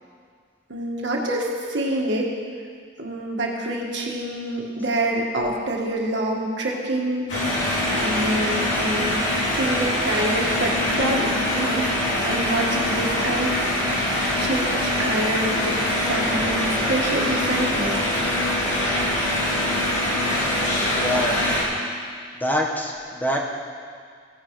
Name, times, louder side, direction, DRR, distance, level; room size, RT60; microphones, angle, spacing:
voice 1, 0.7-2.4 3.0-11.9 12.2-13.5 14.4-18.1, right 1 dB, 70° right, -1 dB, 1.7 m, -26 dB
sound 1, 7.3-21.6, left 1 dB, 80° left, 2.9 m, -23 dB
voice 2, 21.0-21.4 22.3-23.4, equal, 10° left, -1 dB, 1.2 m, -25 dB
16.5 x 10.5 x 3.2 m, 2.1 s
head